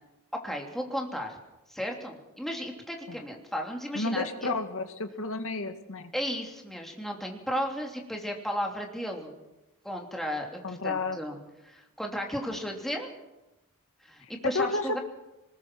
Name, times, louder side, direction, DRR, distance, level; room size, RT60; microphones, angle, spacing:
voice 1, 0.4-1.4 1.7-4.5 6.1-9.4 9.8-11.4 11.6-13.1 14.0-15.0, equal, ahead, 1 dB, 2.9 m, -34 dB
voice 2, 3.9-6.0 10.6-11.2 14.4-15.0, left 3 dB, 65° left, 7 dB, 2.0 m, -31 dB
23.0 x 20.5 x 6.1 m, 1.0 s
head